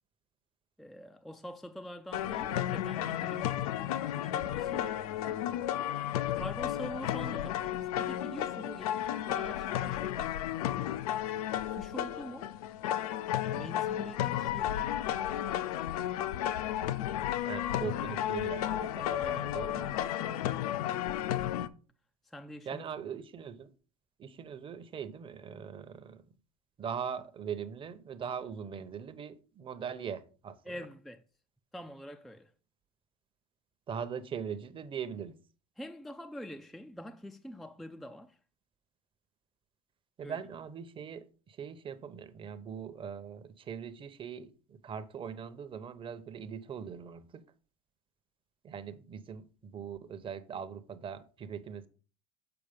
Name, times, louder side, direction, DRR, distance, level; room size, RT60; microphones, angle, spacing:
voice 1, 0.8-5.4 6.3-10.4 11.7-12.6 13.5-15.0 19.2-19.5 19.9-20.7 22.2-22.9 30.6-31.2 31.7-32.5 35.8-38.4 40.2-40.4, equal, ahead, 0.4 m, -45 dB
sound 1, 2.1-21.7, left 11 dB, 85° left, 0.6 m, -33 dB
voice 2, 17.5-19.9 22.7-23.7 24.2-26.2 26.8-30.6 33.9-35.4 40.2-47.4 48.6-51.9, right 7 dB, 30° right, 0.9 m, -41 dB
6.9 x 4.6 x 5.2 m
supercardioid pair, 110°, 19 cm